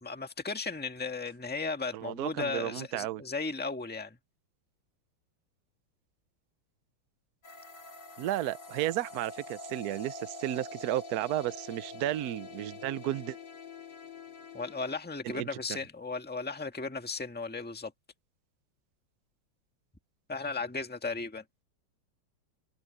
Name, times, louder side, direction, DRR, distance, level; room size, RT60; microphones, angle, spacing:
voice 1, 0.0-4.2 14.5-17.9 20.3-21.4, left 4 dB, 5° left, 1.4 m, -35 dB
voice 2, 1.9-3.2 8.2-13.4 15.2-15.5, right 13 dB, 65° right, 1.0 m, -33 dB
sound 1, 7.4-15.0, left 2 dB, 60° left, 3.2 m, -46 dB
omnidirectional pair, 2.2 m